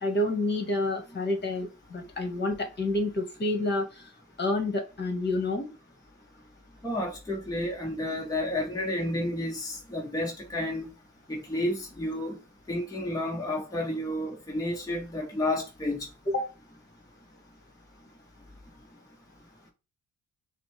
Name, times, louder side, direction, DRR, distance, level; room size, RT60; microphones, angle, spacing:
voice 1, 0.0-4.1 4.4-5.7 16.3-16.5, left 2 dB, 35° left, 1.5 m, -29 dB
voice 2, 6.8-10.9 11.3-12.4 12.7-16.1, left 1 dB, 10° left, 1.1 m, -31 dB
5.9 x 2.2 x 3.3 m
cardioid pair, 90°, 30 cm